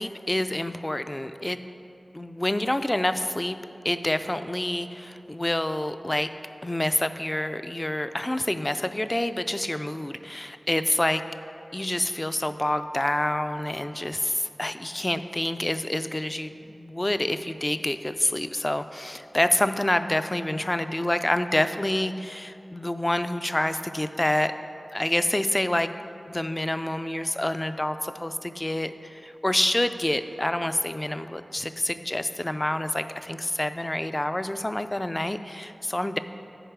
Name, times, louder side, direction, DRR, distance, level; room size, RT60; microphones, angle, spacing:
voice 1, 0.0-1.6 2.1-3.6 3.8-6.3 6.6-11.2 11.7-24.5 24.9-25.9 26.3-36.2, left 1 dB, 20° left, 10 dB, 0.3 m, -27 dB
10.0 x 4.7 x 4.6 m, 2.7 s
wide cardioid pair, 70°, 0 cm